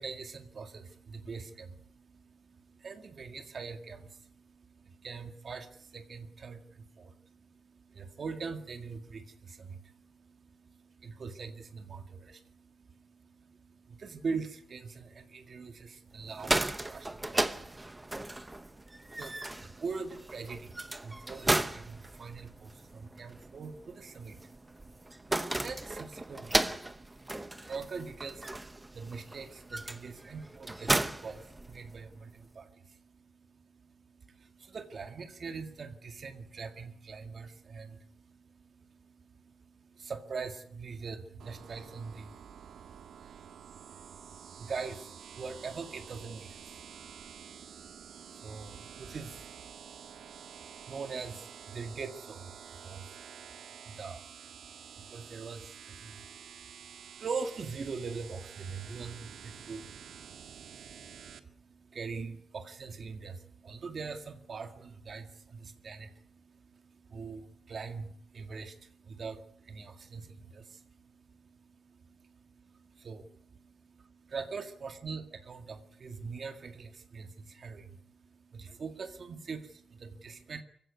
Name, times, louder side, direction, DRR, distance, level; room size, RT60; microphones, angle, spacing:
voice 1, 0.0-80.6, right 5 dB, 40° right, 7 dB, 2.0 m, -44 dB
sound 1, 16.2-32.2, right 2 dB, 10° right, 0.9 m, -35 dB
sound 2, 41.4-61.4, right 8 dB, 85° right, 1.7 m, -49 dB
24.5 x 16.0 x 9.5 m, 0.68 s
wide cardioid pair, 175°, 0 cm